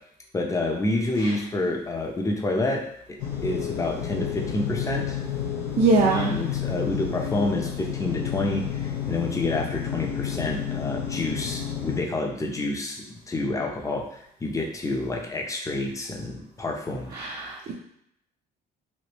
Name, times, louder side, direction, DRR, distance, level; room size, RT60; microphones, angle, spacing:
voice 1, 0.3-2.8 3.4-5.2 6.1-17.1, left 2 dB, 20° left, 1 dB, 0.6 m, -28 dB
sound 1, 3.2-12.0, left 9 dB, 90° left, 0.7 m, -30 dB
voice 2, 5.8-6.4 17.1-17.7, right 3 dB, 55° right, -3 dB, 0.6 m, -22 dB
3.2 x 2.6 x 3.0 m, 0.73 s
cardioid pair, 110°, 17 cm